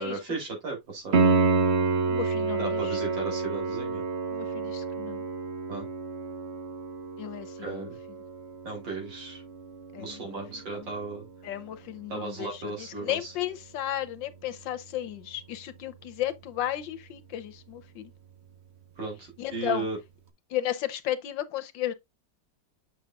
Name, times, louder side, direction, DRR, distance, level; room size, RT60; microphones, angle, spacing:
voice 1, 0.0-1.5 2.6-4.0 5.7-5.9 7.6-7.9 8.6-9.4 10.0-11.3 12.1-13.3 19.0-20.0, right 3 dB, 85° right, 4.4 m, -35 dB
Piano, 1.1-11.8 15.1-15.2, right 4 dB, 45° right, 1.1 m, -29 dB
voice 2, 2.1-3.1 4.3-5.2 7.2-7.9 9.9-10.4 10.7-10.9 11.4-18.1 19.4-19.9 20.5-21.9, left 12 dB, 85° left, 1.6 m, -34 dB
7.4 x 6.4 x 2.4 m
omnidirectional pair, 2.0 m